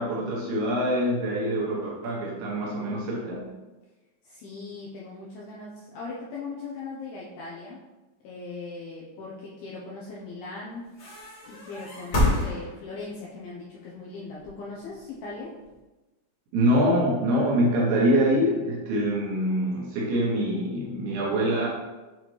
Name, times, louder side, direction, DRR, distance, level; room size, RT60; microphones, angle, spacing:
voice 1, 0.0-3.5 16.5-21.7, equal, 75° right, -4 dB, 2.5 m, -24 dB
voice 2, 4.2-7.8 8.2-10.8 11.5-15.5, left 3 dB, 85° left, -5 dB, 2.3 m, -39 dB
sound 1, 10.9-13.2 14.3-15.8, left 1 dB, 40° left, 1.5 m, -28 dB
7.7 x 4.1 x 3.1 m, 1.1 s
omnidirectional pair, 5.3 m